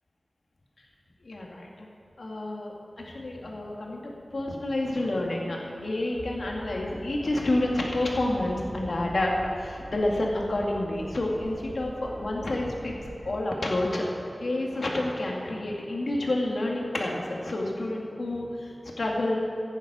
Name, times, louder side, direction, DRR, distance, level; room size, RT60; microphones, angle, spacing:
voice 1, 1.2-1.9 2.2-14.0 14.4-19.4, left 1 dB, 75° left, -1 dB, 2.0 m, -29 dB
sound 1, 6.2-13.3, equal, 5° right, 1.2 m, -44 dB
15.0 x 10.0 x 4.9 m, 2.6 s
wide cardioid pair, 75°, 0 cm